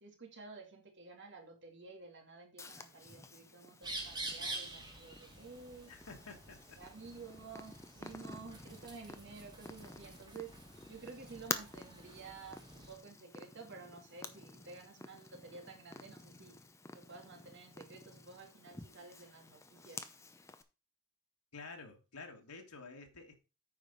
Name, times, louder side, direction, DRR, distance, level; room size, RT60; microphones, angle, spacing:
voice 1, 0.0-5.9 6.8-10.5 10.9-16.5 16.9-20.1, right 4 dB, 55° right, 2.3 m, -52 dB
Purr, 2.6-20.6, left 3 dB, 15° left, 0.6 m, -50 dB
sound 1, 3.8-13.0, right 2 dB, 20° right, 2.7 m, -48 dB
voice 2, 5.9-6.8 21.5-23.4, left 4 dB, 90° left, 1.9 m, -50 dB
9.0 x 5.0 x 5.3 m
head